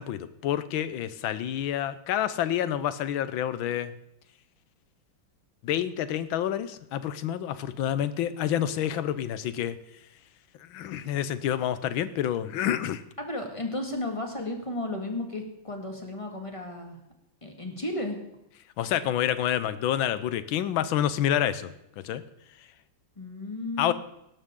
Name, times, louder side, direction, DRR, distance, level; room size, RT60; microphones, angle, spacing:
voice 1, 0.0-3.9 5.6-9.8 10.6-13.0 18.8-22.2 23.8-23.9, left 10 dB, 90° left, 14 dB, 1.6 m, -28 dB
voice 2, 13.2-17.0 17.4-18.2 23.2-23.9, left 2 dB, 15° left, 3 dB, 1.8 m, -34 dB
18.0 x 12.0 x 3.8 m, 0.83 s
omnidirectional pair, 2.1 m